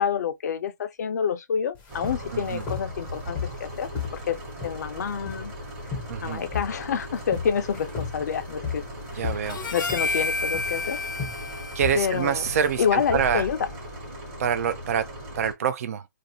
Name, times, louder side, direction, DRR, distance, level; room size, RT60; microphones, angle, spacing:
voice 1, 0.0-3.9 4.3-4.4 4.6-5.5 6.2-8.8 9.1-9.3 9.7-11.0 12.0-12.4 12.8-13.6, left 7 dB, 55° left, 0.5 m, -27 dB
sound 1, 1.8-14.0, left 6 dB, 15° left, 0.6 m, -36 dB
sound 2, 1.9-15.5, equal, 25° right, 1.0 m, -39 dB
voice 2, 2.3-2.6 6.1-6.4 9.1-9.7 11.7-13.5 14.4-16.1, right 8 dB, 50° right, 0.4 m, -26 dB
Harmonica, 9.5-14.0, left 3 dB, 90° left, 0.9 m, -32 dB
2.5 x 2.0 x 2.6 m
hypercardioid pair, 155°, 10 cm